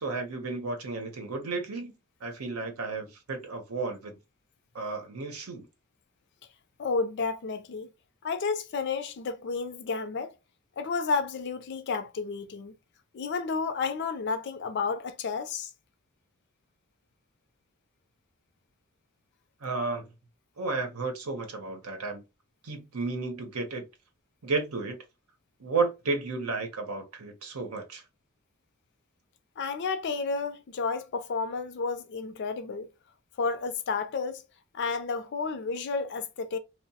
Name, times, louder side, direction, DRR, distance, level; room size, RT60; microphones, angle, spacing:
voice 1, 0.0-1.9 2.2-4.2 4.7-5.6 19.6-20.1 20.6-22.2 22.6-23.8 24.4-25.0 25.6-28.0, right 3 dB, 80° right, 0.8 m, -32 dB
voice 2, 6.8-7.9 8.2-10.3 10.8-12.7 13.1-15.7 29.6-32.9 33.4-34.4 34.7-36.6, left 4 dB, 50° left, 0.4 m, -31 dB
2.8 x 2.0 x 2.7 m
head